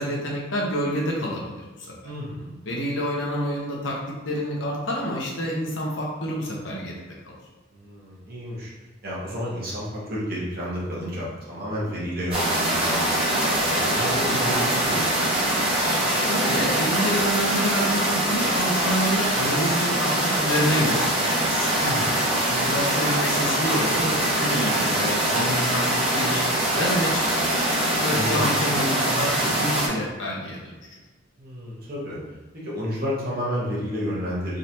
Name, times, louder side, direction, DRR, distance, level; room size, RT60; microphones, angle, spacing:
voice 1, 0.0-1.7 2.7-4.0 4.3-7.0 7.2-7.3 16.0-21.8 22.5-26.5 26.8-27.4 28.0-30.9, equal, 65° left, -2 dB, 0.9 m, -28 dB
voice 2, 2.0-2.5 7.7-8.7 9.0-15.1 21.8-22.2 28.1-28.5 31.4-32.2 32.5-34.6, equal, 50° right, -6 dB, 1.2 m, -31 dB
sound 1, 12.3-29.9, right 1 dB, 30° right, 0.9 m, -23 dB
3.8 x 3.2 x 2.8 m, 1.2 s
head